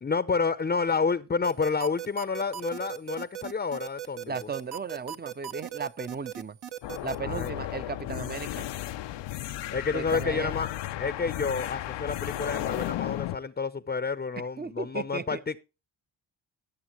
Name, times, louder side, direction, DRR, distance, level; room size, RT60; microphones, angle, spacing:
voice 1, 0.0-4.3 7.2-7.5 9.7-10.7 11.0-15.6, left 5 dB, 20° left, 0.7 m, -29 dB
sound 1, 1.4-7.2, right 11 dB, 55° right, 1.0 m, -37 dB
voice 2, 4.3-6.6 7.0-8.7 9.9-10.5 14.6-15.4, right 5 dB, 20° right, 0.7 m, -35 dB
sound 2, 6.8-13.4, left 14 dB, 70° left, 0.6 m, -34 dB
18.0 x 7.0 x 3.1 m
supercardioid pair, 65°, 46 cm